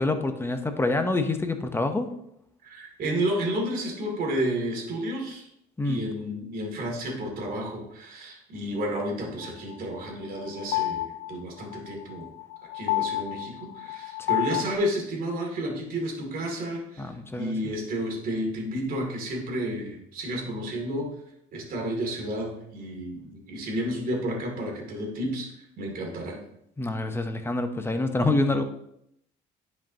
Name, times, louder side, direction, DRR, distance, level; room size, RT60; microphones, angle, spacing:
voice 1, 0.0-2.1 5.8-6.0 17.0-17.5 26.8-28.6, left 2 dB, 15° left, 7 dB, 0.8 m, -26 dB
voice 2, 2.6-5.5 5.8-12.3 12.7-21.1 21.5-25.5 25.8-26.4, right 1 dB, 60° right, 0 dB, 2.6 m, -31 dB
sound 1, 9.4-14.7, left 16 dB, 75° left, 0.5 m, -30 dB
10.0 x 5.4 x 2.9 m, 0.74 s
cardioid pair, 110°, 17 cm